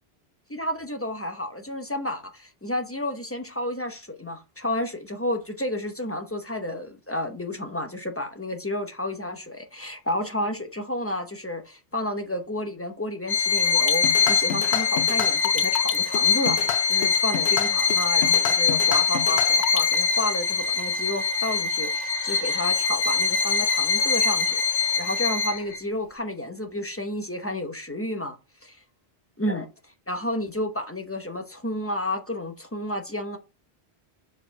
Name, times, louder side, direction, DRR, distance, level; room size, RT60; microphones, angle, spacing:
voice 1, 0.5-16.6 16.9-28.4 28.6-28.8 29.4-29.7 30.1-33.4, left 1 dB, 15° left, 0.9 m, -31 dB
Bowed string instrument, 13.3-25.8, left 6 dB, 60° left, 1.0 m, -23 dB
sound 1, 13.7-20.0, left 9 dB, 85° left, 0.9 m, -30 dB
4.8 x 4.5 x 5.9 m
omnidirectional pair, 1.1 m